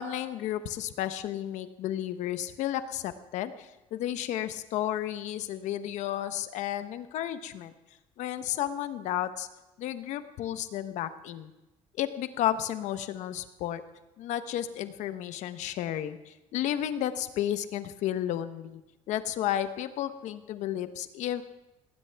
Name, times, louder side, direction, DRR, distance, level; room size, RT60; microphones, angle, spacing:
voice 1, 0.0-7.7 8.2-9.5 9.8-11.5 12.0-13.8 14.2-18.8 19.1-21.4, left 11 dB, 70° left, 10 dB, 1.0 m, -32 dB
19.0 x 18.5 x 3.5 m, 0.99 s
cardioid pair, 130°, 13 cm